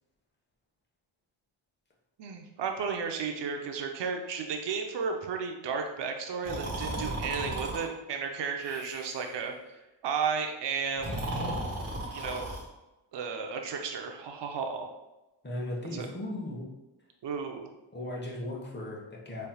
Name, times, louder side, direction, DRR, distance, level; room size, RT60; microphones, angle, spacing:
voice 1, 2.2-9.5 10.0-11.2 12.1-12.5 13.1-14.9 15.9-16.1 17.2-17.7, right 5 dB, 60° right, 4 dB, 0.7 m, -33 dB
Breathing, 6.4-7.8 8.6-9.3 10.9-12.7, right 1 dB, 30° right, 1.5 m, -35 dB
voice 2, 15.4-16.7 17.9-19.5, left 1 dB, 20° left, -2 dB, 1.2 m, -37 dB
4.2 x 3.4 x 2.3 m, 1.0 s
cardioid pair, 70°, 48 cm